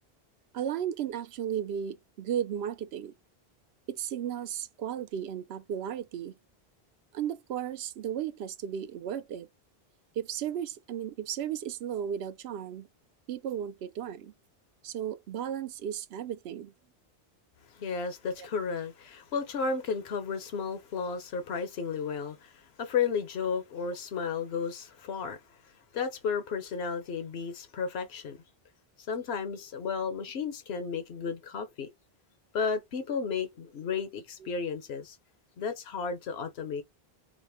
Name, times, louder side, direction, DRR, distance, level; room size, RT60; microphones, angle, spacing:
voice 1, 0.5-3.1 3.9-6.3 7.1-9.5 10.2-12.9 13.3-14.3 14.8-16.7 18.4-18.5, right 9 dB, 85° right, 0.8 m, -35 dB
voice 2, 17.8-22.5 22.8-25.4 25.9-28.4 29.1-31.9 32.5-35.2 35.6-36.8, left 5 dB, 85° left, 1.0 m, -33 dB
5.0 x 2.0 x 3.4 m
omnidirectional pair, 1.0 m